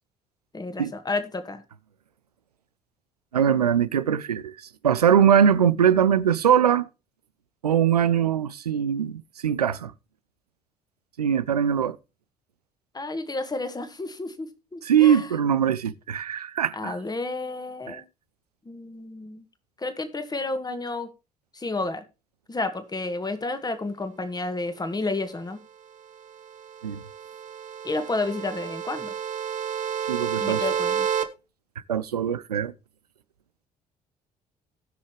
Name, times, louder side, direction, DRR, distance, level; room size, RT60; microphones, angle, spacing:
voice 1, 0.5-1.6 12.9-15.3 16.7-18.0 18.7-19.4 19.8-21.1 21.5-22.0 22.5-25.6 27.8-29.1 30.4-31.1, left 3 dB, 20° left, 1.9 m, -31 dB
voice 2, 3.3-6.9 7.6-9.9 11.2-12.0 14.8-17.0 17.9-18.0 26.8-27.0 30.1-30.6 31.9-32.7, right 8 dB, 85° right, 0.5 m, -22 dB
sound 1, 26.3-31.2, right 8 dB, 40° right, 1.5 m, -30 dB
18.5 x 6.2 x 3.2 m
figure-of-eight pair, 50°, 19 cm